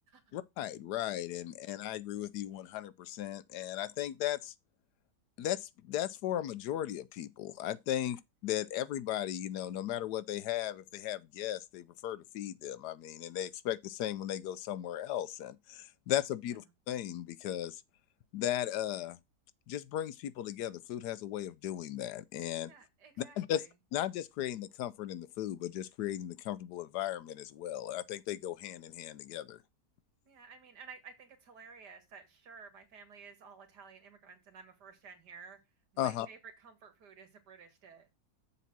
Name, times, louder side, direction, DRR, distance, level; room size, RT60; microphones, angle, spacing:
voice 1, 0.3-4.5 5.4-17.8 18.3-19.2 19.7-22.7 23.4-23.6 23.9-29.6 36.0-36.3, left 12 dB, 85° left, 1.2 m, -36 dB
voice 2, 22.7-23.7 30.3-35.6 35.9-38.1, right 5 dB, 85° right, 2.2 m, -53 dB
7.0 x 4.2 x 5.9 m
omnidirectional pair, 1.7 m